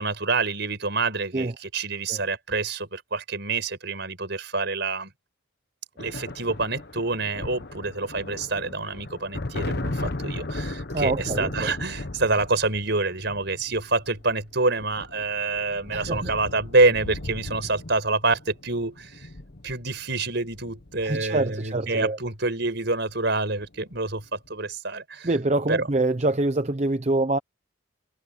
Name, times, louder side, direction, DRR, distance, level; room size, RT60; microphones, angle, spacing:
voice 1, 0.0-5.1 6.0-19.3 19.6-25.3 25.7-25.9, right 3 dB, 55° right, 5.8 m, -27 dB
sound 1, 6.0-21.7 22.9-23.1 23.4-24.1, left 2 dB, 50° left, 1.2 m, -36 dB
voice 2, 10.9-11.7 15.9-16.3 21.0-22.2 25.2-27.4, right 2 dB, 35° right, 0.7 m, -25 dB
head